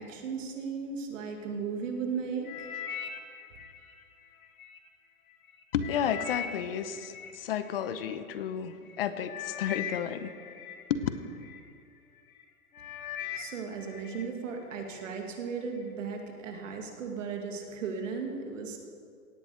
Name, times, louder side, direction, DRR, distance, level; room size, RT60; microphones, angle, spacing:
voice 1, 0.0-2.7 13.4-18.8, right 5 dB, 55° right, 3 dB, 2.2 m, -36 dB
sound 1, 2.4-4.8 5.3-8.2 8.9-9.0 9.3-11.6 12.2-12.4 12.7-14.3 14.6-15.1 15.7-15.8, left 9 dB, 65° left, 1.8 m, -41 dB
voice 2, 5.7-10.3 10.9-11.1, left 8 dB, 40° left, 11 dB, 0.9 m, -32 dB
17.5 x 7.2 x 8.1 m, 2.3 s
hypercardioid pair, 160°, 46 cm